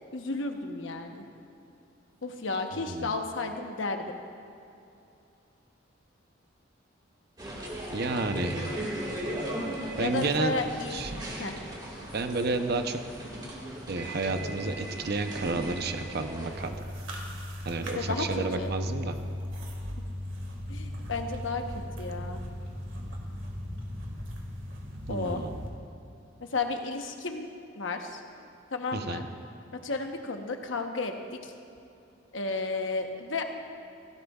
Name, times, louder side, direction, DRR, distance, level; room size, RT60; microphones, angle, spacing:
voice 1, 0.1-1.3 2.2-4.2 10.0-11.1 11.4-11.6 17.8-18.7 20.7-21.7 22.0-22.4 25.1-25.5 26.4-28.2 28.7-29.3 29.8-31.5 32.3-33.4, left 3 dB, 80° left, 4 dB, 1.0 m, -33 dB
voice 2, 2.7-3.2 7.9-8.7 10.0-10.5 10.9-11.2 12.1-13.0 13.9-16.8 17.7-19.2 25.1-25.7 28.9-29.3, right 3 dB, 55° right, 7 dB, 0.7 m, -31 dB
sound 1, 7.4-16.7, right 1 dB, 20° right, 1.9 m, -37 dB
sound 2, 16.5-25.7, left 1 dB, 85° right, 1.9 m, -37 dB
17.0 x 16.0 x 2.4 m, 2.8 s
head